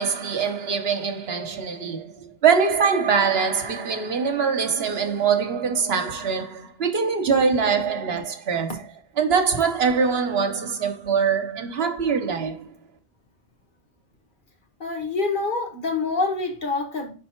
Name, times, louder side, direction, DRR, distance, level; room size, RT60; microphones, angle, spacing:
voice 1, 0.0-8.8 9.2-12.7, right 6 dB, 70° right, 1.1 m, -23 dB
voice 2, 14.8-17.1, left 3 dB, 50° left, 1.4 m, -26 dB
5.4 x 4.1 x 4.3 m
omnidirectional pair, 1.1 m